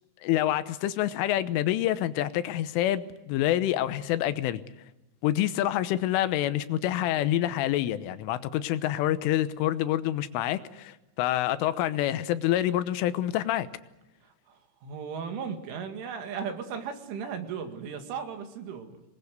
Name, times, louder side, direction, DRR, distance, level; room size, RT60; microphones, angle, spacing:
voice 1, 0.2-4.6 5.2-13.7, left 13 dB, 85° left, 13 dB, 3.5 m, -27 dB
voice 2, 14.2-19.0, right 6 dB, 80° right, 6 dB, 4.6 m, -36 dB
26.5 x 20.5 x 8.1 m, 0.98 s
omnidirectional pair, 5.6 m